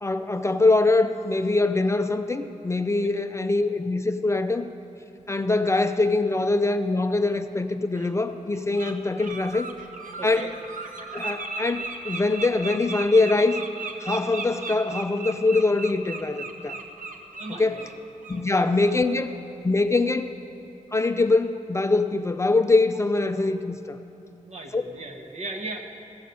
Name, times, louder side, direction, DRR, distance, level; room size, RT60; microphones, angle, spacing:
voice 1, 0.0-4.7 5.3-9.7 10.2-10.5 11.1-13.6 14.0-16.8 17.6-17.9 18.3-19.3 19.6-20.3 20.9-24.0 24.7-24.8, left 3 dB, 20° left, 8 dB, 0.4 m, -23 dB
Bird, 7.9-8.1 8.5-8.9 9.2-17.9 18.2-18.4 18.8-19.0, right 3 dB, 80° right, 1.0 m, -36 dB
voice 2, 10.2-10.5 17.4-17.9 18.5-18.8 24.4-25.8, right 2 dB, 55° right, 4 dB, 1.1 m, -37 dB
16.0 x 6.4 x 6.8 m, 2.8 s
wide cardioid pair, 140°, 13 cm